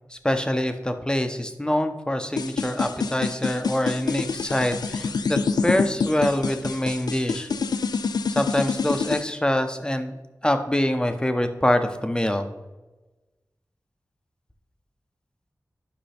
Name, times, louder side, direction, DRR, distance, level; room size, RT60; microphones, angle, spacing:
voice 1, 0.1-7.5 8.3-10.2 10.4-12.5, left 1 dB, 10° left, 7 dB, 0.8 m, -25 dB
sound 1, 2.4-9.2, left 5 dB, 85° left, 0.4 m, -26 dB
10.0 x 5.3 x 3.4 m, 1.1 s
wide cardioid pair, 65°, 7 cm